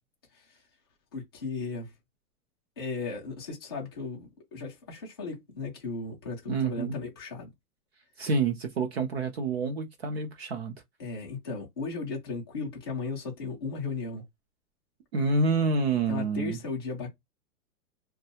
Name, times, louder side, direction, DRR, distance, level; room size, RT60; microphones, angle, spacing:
voice 1, 1.1-1.9 2.8-7.5 11.0-14.2 15.9-17.1, left 4 dB, 20° left, 0.4 m, -36 dB
voice 2, 6.5-7.0 8.2-10.7 15.1-16.6, right 3 dB, 45° right, 0.6 m, -28 dB
2.5 x 2.2 x 2.8 m
hypercardioid pair, 165°, 46 cm